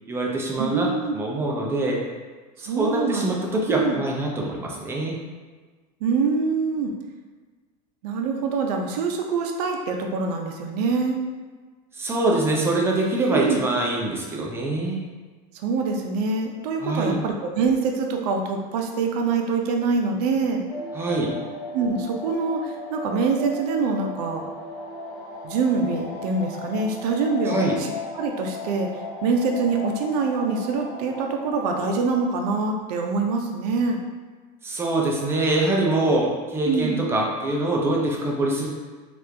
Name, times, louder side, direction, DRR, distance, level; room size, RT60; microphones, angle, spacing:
voice 1, 0.1-2.0 2.6-5.2 11.9-15.0 16.8-17.2 20.9-21.4 27.5-27.8 34.6-38.7, right 2 dB, 10° right, -1 dB, 0.3 m, -24 dB
voice 2, 0.6-1.1 2.7-3.3 3.7-4.0 6.0-6.9 8.0-11.2 13.3-13.6 15.6-20.6 21.7-24.4 25.4-28.9 29.2-34.0 36.7-37.0, right 4 dB, 75° right, 2 dB, 0.6 m, -25 dB
sound 1, 20.7-32.0, left 2 dB, 15° left, 0.8 m, -36 dB
3.0 x 2.4 x 3.3 m, 1.4 s
supercardioid pair, 155°, 21 cm